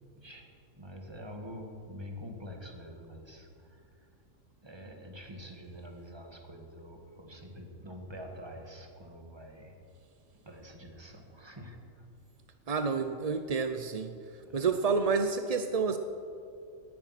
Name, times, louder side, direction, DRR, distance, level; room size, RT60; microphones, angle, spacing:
voice 1, 0.2-0.5 0.8-4.1 4.6-9.8 10.5-11.8 14.4-14.6, equal, 20° right, 2 dB, 1.8 m, -46 dB
voice 2, 12.7-14.1 14.5-16.0, right 5 dB, 50° right, 8 dB, 0.4 m, -29 dB
19.0 x 10.5 x 5.9 m, 2.5 s
omnidirectional pair, 1.5 m